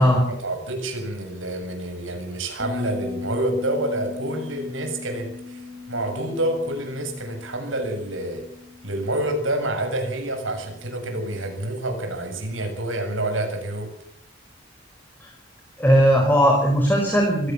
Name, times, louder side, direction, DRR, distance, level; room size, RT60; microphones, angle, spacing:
voice 1, 0.0-8.5 8.8-13.9, right 1 dB, 80° right, 5 dB, 7.3 m, -28 dB
Bass guitar, 2.6-12.0, left 4 dB, 35° right, 7.5 m, -39 dB
voice 2, 15.8-17.5, equal, 10° left, 1 dB, 5.0 m, -18 dB
24.0 x 16.5 x 7.4 m, 0.67 s
head